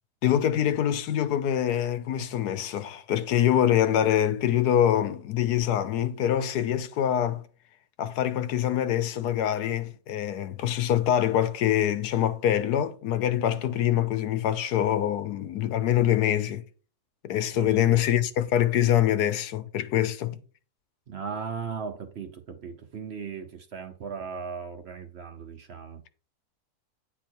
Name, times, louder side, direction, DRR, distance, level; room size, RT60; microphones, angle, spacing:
voice 1, 0.2-7.4 8.0-16.6 17.2-20.4, left 11 dB, 85° left, 1.3 m, -25 dB
voice 2, 17.5-18.0 21.1-26.0, right 6 dB, 50° right, 0.9 m, -37 dB
9.1 x 4.2 x 4.5 m
omnidirectional pair, 1.6 m